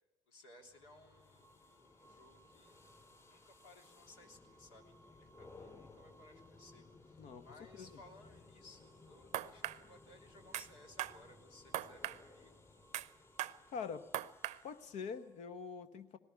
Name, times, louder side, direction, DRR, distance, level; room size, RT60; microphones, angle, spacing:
voice 1, 0.3-2.8 3.3-12.6, left 2 dB, 65° left, 1 dB, 3.4 m, -61 dB
sound 1, 0.6-15.4, left 2 dB, 20° left, 7.4 m, -60 dB
sound 2, 9.3-9.8 10.5-10.7 11.0-11.2 11.7-12.2 12.9-13.1 13.4-13.6 14.1-14.6, right 14 dB, 50° right, 0.8 m, -39 dB
voice 2, 13.7-14.1 14.6-16.2, left 6 dB, 50° left, 10 dB, 1.3 m, -44 dB
20.0 x 18.0 x 8.8 m, 0.97 s
figure-of-eight pair, 60°, 15 cm